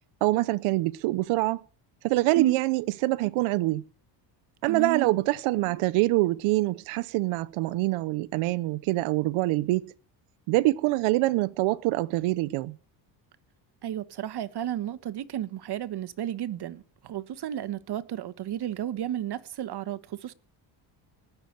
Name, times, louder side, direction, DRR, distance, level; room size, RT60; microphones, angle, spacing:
voice 1, 0.2-1.6 2.0-3.8 4.6-9.9 10.5-12.8, right 19 dB, 75° right, 0.8 m, -25 dB
voice 2, 4.7-5.1 13.8-20.3, right 11 dB, 50° right, 1.5 m, -32 dB
18.5 x 7.1 x 8.0 m
supercardioid pair, 90°, 50 cm